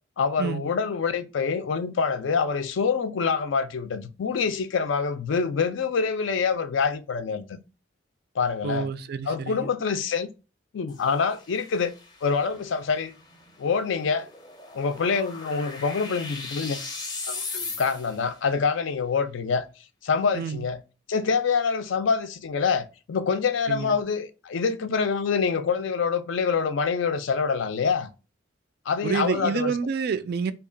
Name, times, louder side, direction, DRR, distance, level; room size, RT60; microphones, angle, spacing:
voice 1, 0.2-7.6 8.4-8.9 9.3-10.3 10.7-11.9 12.2-13.1 13.6-14.3 14.7-16.8 17.3-19.7 20.0-20.8 21.1-28.1 28.9-29.7, left 5 dB, 70° left, 0.4 m, -26 dB
voice 2, 8.6-9.7 20.3-20.7 23.7-24.0 29.0-30.5, right 6 dB, 50° right, 0.3 m, -28 dB
sound 1, 10.9-18.3, left 4 dB, 20° left, 0.5 m, -39 dB
2.8 x 2.3 x 3.7 m
head